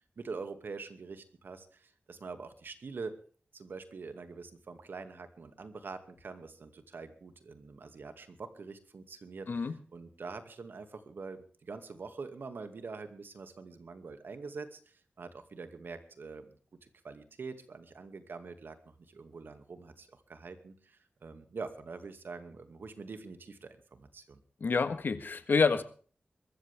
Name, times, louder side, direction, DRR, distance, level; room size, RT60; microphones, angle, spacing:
voice 1, 0.2-3.1 3.5-16.6 17.0-24.4, right 4 dB, 80° right, 9 dB, 2.3 m, -45 dB
voice 2, 24.6-25.8, left 4 dB, 70° left, 12 dB, 1.5 m, -28 dB
22.5 x 14.0 x 3.6 m, 0.42 s
wide cardioid pair, 80°, 4 cm